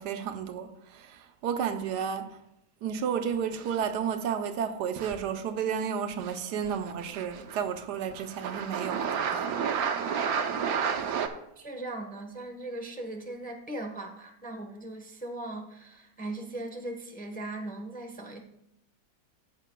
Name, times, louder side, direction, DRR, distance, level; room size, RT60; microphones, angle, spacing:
voice 1, 0.0-2.4 2.8-10.0 11.0-11.1, right 7 dB, 90° right, 1.3 m, -32 dB
sound 1, 3.5-4.0 5.0-5.2 6.2-6.4 6.6-7.8 8.1-11.3, right 7 dB, 70° right, 1.2 m, -31 dB
voice 2, 11.6-18.4, right 2 dB, 10° left, 0.6 m, -39 dB
14.0 x 7.4 x 2.2 m
omnidirectional pair, 1.7 m